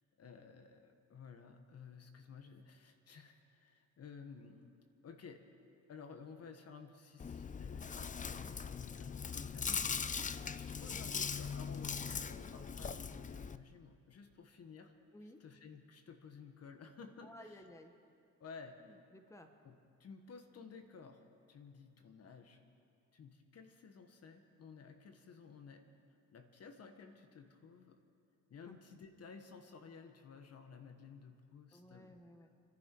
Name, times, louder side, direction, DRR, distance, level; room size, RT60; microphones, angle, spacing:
voice 1, 0.2-5.4 5.9-10.0 10.2-14.9 15.4-17.6 18.4-19.0 19.6-21.2 21.5-22.6 23.1-25.9 26.3-28.0 28.5-32.2, left 5 dB, 55° left, 7 dB, 1.4 m, -54 dB
Chewing mastication, 7.2-13.6, left 6 dB, 25° left, 0.5 m, -40 dB
voice 2, 17.2-17.9 18.8-19.5 28.7-28.8 31.7-32.5, left 1 dB, 10° left, 6 dB, 1.2 m, -56 dB
28.5 x 11.0 x 4.6 m, 2.4 s
cardioid pair, 90°, 30 cm